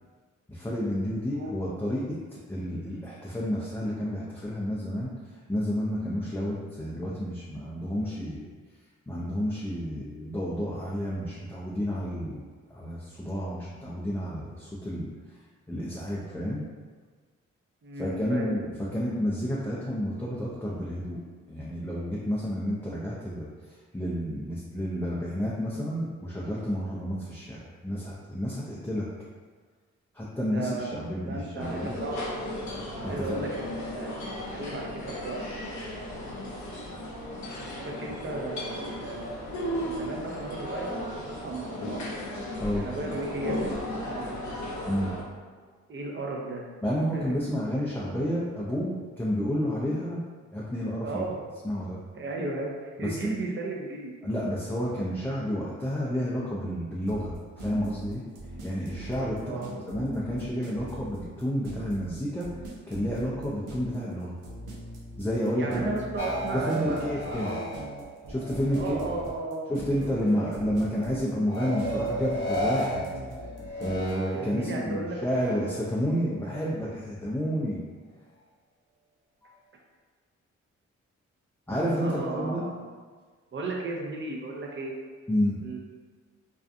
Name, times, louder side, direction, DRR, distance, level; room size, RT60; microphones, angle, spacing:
voice 1, 0.5-5.1 5.5-8.5 9.1-15.1 15.7-16.6 18.0-21.2 21.5-29.1 30.1-32.0 33.0-33.4 42.6-42.9 44.9-45.2 46.8-50.2 50.5-51.2 51.6-52.0 53.0-53.2 54.2-58.2 58.6-62.5 62.9-64.3 65.2-65.9 66.5-67.5 68.3-69.0 69.7-73.1 73.8-77.8 79.4-79.5 81.7-82.6 85.3-85.6, equal, 5° left, -7 dB, 0.4 m, -30 dB
voice 2, 17.8-18.5 30.5-32.5 33.0-34.1 34.5-35.4 36.2-36.5 37.8-39.4 39.8-42.0 42.7-43.8 44.1-44.4 45.9-46.7 47.1-47.3 51.0-51.4 52.2-54.2 59.4-60.0 65.4-67.7 68.7-69.7 70.3-70.5 74.3-75.2 82.0-82.8 83.5-84.9 85.6-85.8, right 2 dB, 40° right, -1 dB, 0.6 m, -35 dB
sound 1, 31.6-45.2, left 1 dB, 70° left, 0.7 m, -35 dB
sound 2, 57.1-74.1, right 2 dB, 85° right, 0.5 m, -42 dB
sound 3, 66.2-69.4 69.7-70.5 71.5-74.7 75.2-76.0, equal, 35° left, 0.8 m, -34 dB
2.5 x 2.2 x 2.5 m, 1.5 s
cardioid pair, 60°, 30 cm